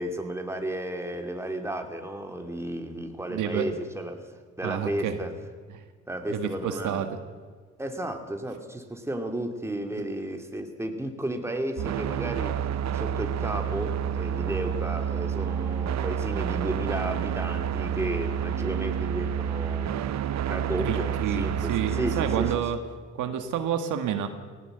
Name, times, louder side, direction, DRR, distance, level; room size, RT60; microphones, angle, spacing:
voice 1, 0.0-4.2 4.6-5.3 6.1-7.0 7.8-12.6 12.9-20.2 20.5-22.6, right 1 dB, 10° right, 4 dB, 2.8 m, -33 dB
voice 2, 3.3-3.7 4.6-5.2 5.7-5.8 6.3-7.2 20.8-22.8 23.2-24.3, right 9 dB, 85° right, 7 dB, 1.7 m, -29 dB
sound 1, 11.8-22.6, right 9 dB, 65° right, 0.9 m, -29 dB
18.0 x 18.0 x 8.0 m, 1.5 s
cardioid pair, 90°, 30 cm